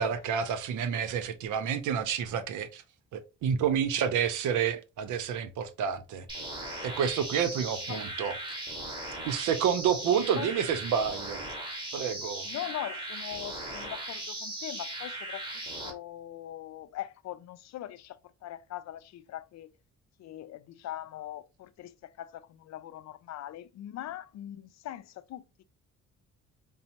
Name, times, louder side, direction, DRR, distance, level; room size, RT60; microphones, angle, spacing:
voice 1, 0.0-2.8 3.1-6.3 6.8-8.6 9.2-11.4 11.9-12.5, right 8 dB, 80° right, 0.7 m, -29 dB
sound 1, 6.3-15.9, right 1 dB, 15° right, 1.6 m, -38 dB
voice 2, 7.5-8.2 10.0-10.5 12.4-19.7 20.2-25.6, left 12 dB, 60° left, 0.4 m, -41 dB
5.1 x 2.0 x 2.8 m
cardioid pair, 90°, 30 cm